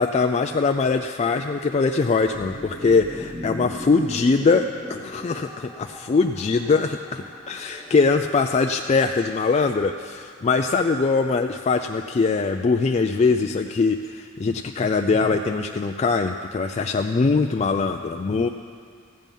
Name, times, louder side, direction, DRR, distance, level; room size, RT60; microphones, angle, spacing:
voice 1, 0.0-18.5, left 4 dB, 30° left, 5 dB, 0.3 m, -22 dB
sound 1, 2.3-9.2, left 1 dB, 20° right, 2.3 m, -39 dB
15.0 x 9.1 x 5.4 m, 2.2 s
head